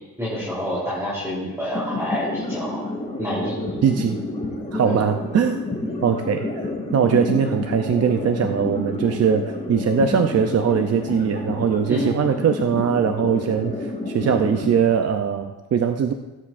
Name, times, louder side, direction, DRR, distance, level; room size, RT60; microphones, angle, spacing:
voice 1, 0.2-2.8 3.2-3.7 4.7-4.9 5.8-6.0 11.9-12.1, equal, 5° right, -9 dB, 3.2 m, -27 dB
sound 1, 1.7-14.8, left 2 dB, 20° left, 2.5 m, -30 dB
voice 2, 3.8-4.2 4.7-5.6 6.0-6.6 6.9-16.1, right 7 dB, 40° right, 5 dB, 0.5 m, -21 dB
17.5 x 9.4 x 2.5 m, 1.1 s
wide cardioid pair, 145°, 39 cm